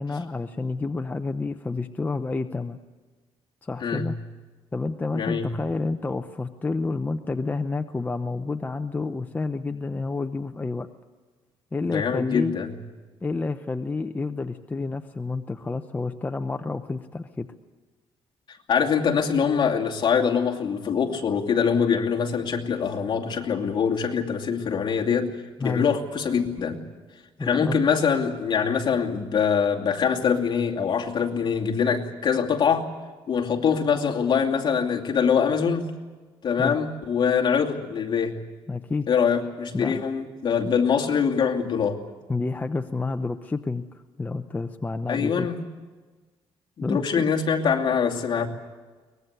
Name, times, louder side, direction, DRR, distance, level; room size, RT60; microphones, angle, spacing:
voice 1, 0.0-2.8 3.6-4.2 4.7-10.9 11.7-12.5 13.2-17.5 25.6-25.9 27.4-27.8 36.6-36.8 38.7-39.1 39.7-40.0 42.3-43.9 44.2-45.5 46.8-47.4, left 3 dB, 15° left, 7 dB, 0.7 m, -29 dB
voice 2, 3.8-4.1 5.1-5.5 11.8-12.7 18.7-25.3 25.6-26.8 27.4-32.9 33.3-35.9 36.4-38.4 39.1-42.0 45.1-45.6 46.8-48.5, left 6 dB, 45° left, 1 dB, 2.5 m, -24 dB
23.0 x 20.0 x 8.2 m, 1.4 s
cardioid pair, 125°, 10 cm